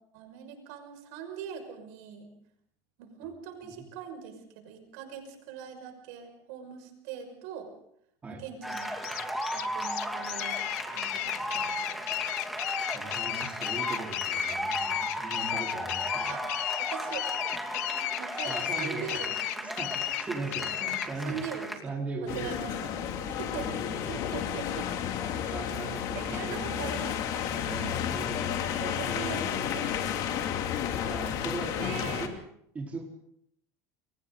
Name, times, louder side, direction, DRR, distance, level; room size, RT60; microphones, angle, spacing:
voice 1, 0.1-2.3 3.0-7.7 8.3-9.0 9.5-10.6 10.9-12.1 16.3-17.3 18.1-20.1 20.8-21.0 21.2-21.7 22.2-24.9 26.1-27.5 28.8-30.4 31.8-32.3, right 8 dB, 75° right, 5 dB, 6.1 m, -42 dB
sound 1, 8.6-21.8, equal, ahead, 2.7 m, -36 dB
sound 2, 8.7-21.1, left 19 dB, 80° left, 0.8 m, -33 dB
voice 2, 12.8-16.4 18.4-19.3 19.6-21.4 21.8-23.1 23.4-24.1 25.2-27.0 27.7-29.8 31.0-32.3 32.7-33.0, right 3 dB, 15° right, -1 dB, 4.3 m, -39 dB
sound 3, 22.3-32.3, left 9 dB, 50° left, 2.8 m, -32 dB
29.5 x 24.0 x 4.0 m, 0.71 s
cardioid pair, 160°, 8 cm